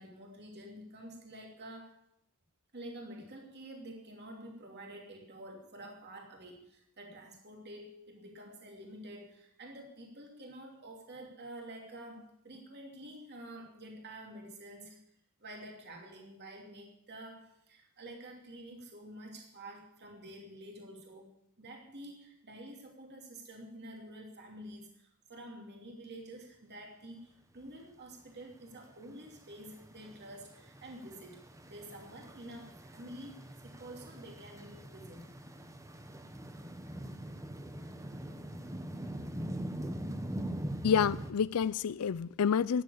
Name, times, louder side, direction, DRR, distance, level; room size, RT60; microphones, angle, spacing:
voice 1, 0.0-2.0 2.7-15.0 15.4-35.3, right 1 dB, 50° right, 2.8 m, -49 dB
sound 1, 28.5-41.3, right 1 dB, 15° right, 1.1 m, -43 dB
voice 2, 40.8-42.8, left 7 dB, 80° left, 0.4 m, -28 dB
13.5 x 9.5 x 8.6 m
head